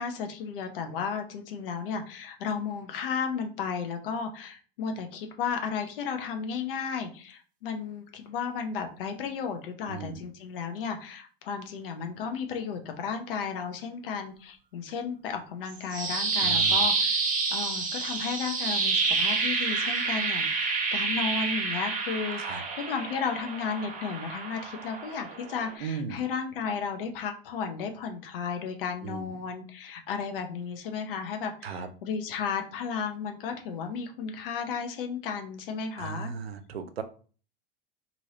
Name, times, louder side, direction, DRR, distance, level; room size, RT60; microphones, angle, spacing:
voice 1, 0.0-17.2 17.5-36.3, left 6 dB, 65° left, 5 dB, 0.8 m, -34 dB
voice 2, 9.9-10.2 16.4-16.8 22.4-22.6 25.8-26.2 29.0-29.3 31.6-31.9 36.0-37.0, right 6 dB, 85° right, 9 dB, 0.5 m, -36 dB
sound 1, 15.7-25.7, right 4 dB, 25° right, 0.8 m, -28 dB
3.1 x 2.7 x 2.8 m, 0.39 s
hypercardioid pair, 90°, 30 cm